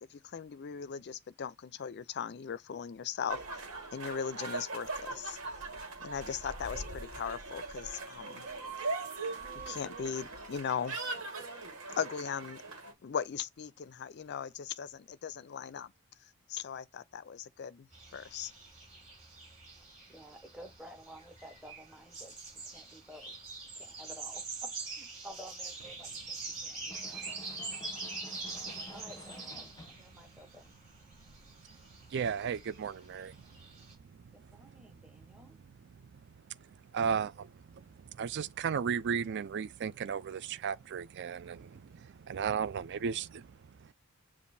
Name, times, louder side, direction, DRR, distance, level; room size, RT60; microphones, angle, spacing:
voice 1, 0.0-3.4 3.9-5.4 6.0-8.5 9.7-11.1 12.0-12.6 13.0-15.9 16.5-17.9 18.1-18.5, left 7 dB, 50° left, 0.4 m, -38 dB
sound 1, 3.3-12.9, right 3 dB, 70° right, 1.7 m, -40 dB
sound 2, 17.9-33.9, right 3 dB, 30° right, 3.7 m, -45 dB
voice 2, 20.1-23.3 23.7-27.3 27.6-27.7 28.9-30.8 34.3-35.6, equal, 5° right, 1.1 m, -52 dB
sound 3, 26.9-30.1, left 2 dB, 15° left, 0.9 m, -51 dB
voice 3, 32.1-33.6 34.4-34.7 35.9-43.9, right 7 dB, 55° right, 0.4 m, -36 dB
7.0 x 2.5 x 2.6 m
head